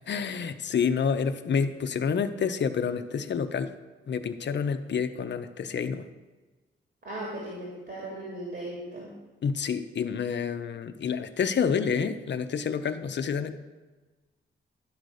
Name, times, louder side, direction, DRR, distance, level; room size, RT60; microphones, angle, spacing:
voice 1, 0.1-3.7 4.1-6.1 9.4-13.5, left 6 dB, 60° left, 9 dB, 0.6 m, -28 dB
voice 2, 7.0-9.1, right 1 dB, 55° right, -4 dB, 2.6 m, -37 dB
11.5 x 3.9 x 6.5 m, 1.3 s
cardioid pair, 80°, 20 cm